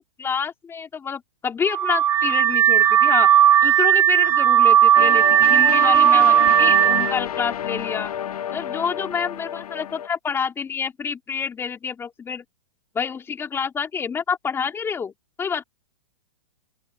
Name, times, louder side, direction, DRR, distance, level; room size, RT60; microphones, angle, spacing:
voice 1, 0.2-3.3 3.6-8.1 8.5-12.4 12.9-15.1 15.4-15.6, left 6 dB, 15° left, 2.8 m, -28 dB
Car / Alarm, 1.7-7.1, right 10 dB, 10° right, 0.3 m, -16 dB
sound 1, 4.9-10.1, left 9 dB, 80° left, 1.3 m, -30 dB
open air
hypercardioid pair, 145°, 19 cm